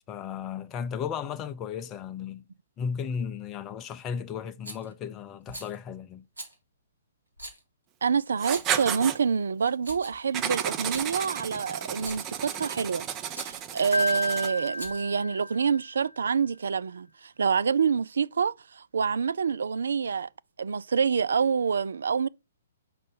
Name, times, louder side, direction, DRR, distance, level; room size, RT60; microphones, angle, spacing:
voice 1, 0.1-2.4 2.8-6.2, left 7 dB, 20° left, 0.4 m, -35 dB
Rattle, 4.6-4.9 5.5-5.7 6.4-6.5 7.4-7.6 8.4-8.8 9.6-10.3 10.8-11.1 11.9-12.3 13.3-13.6 14.6-15.2, right 1 dB, 80° right, 2.2 m, -42 dB
voice 2, 8.0-13.1 13.4-20.3 20.6-22.3, right 6 dB, 65° right, 0.3 m, -27 dB
Writing, 8.4-9.2 10.3-14.7, right 9 dB, 25° right, 0.6 m, -33 dB
Piano, 13.9-16.0, left 1 dB, 85° left, 0.3 m, -31 dB
5.2 x 4.0 x 5.4 m
figure-of-eight pair, 120°, 0 cm